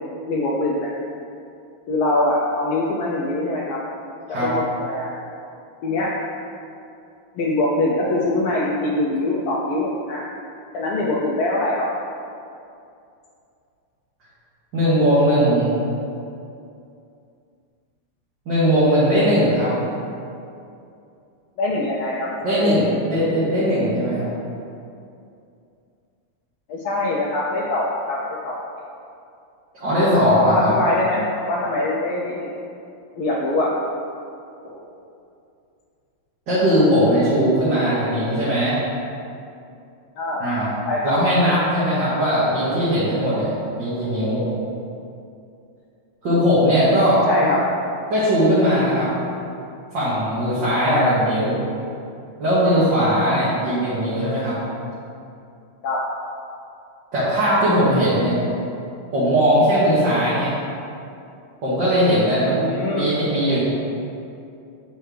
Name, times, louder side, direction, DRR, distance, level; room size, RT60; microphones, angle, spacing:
voice 1, 0.3-0.9 1.9-3.8 4.4-5.1 5.8-6.1 7.3-10.2 10.7-11.9 21.6-22.8 26.7-28.6 30.4-32.5 33.1-33.7 40.2-40.4 40.9-41.1 47.3-47.6 50.9-51.1 52.6-52.8 55.8-56.0 62.5-63.1, left 2 dB, 90° left, -5 dB, 1.6 m, -23 dB
voice 2, 14.7-15.7 18.5-19.7 22.4-24.2 29.8-30.7 36.5-38.8 40.4-40.7 41.0-44.4 46.2-47.3 48.1-49.1 49.9-51.6 52.4-54.5 57.1-58.3 59.1-60.5 61.6-63.6, equal, 60° right, -12 dB, 2.3 m, -19 dB
7.4 x 5.4 x 3.3 m, 2.6 s
omnidirectional pair, 2.3 m